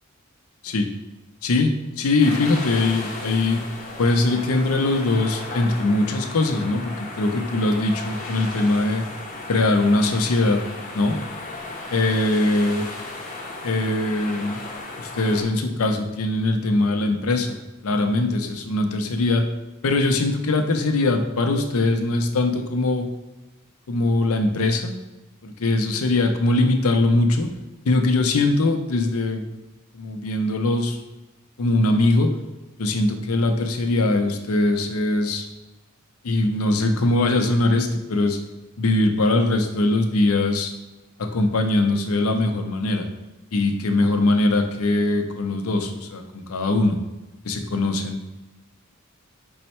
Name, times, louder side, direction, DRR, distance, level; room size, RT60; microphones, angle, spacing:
voice 1, 1.4-3.6 4.0-9.0 9.5-10.7 10.9-11.2 11.9-12.9 13.6-14.6 15.0-19.5 19.8-23.1 23.9-24.9 25.4-27.5 27.9-29.5 29.9-31.0 31.6-32.3 32.8-35.5 36.2-38.4 38.8-40.7 41.2-43.1 43.5-47.0 47.4-48.2, left 2 dB, 85° left, 6 dB, 0.6 m, -21 dB
sound 1, 2.2-15.4, left 2 dB, 40° left, 0.7 m, -35 dB
5.3 x 2.1 x 4.2 m, 1.1 s
head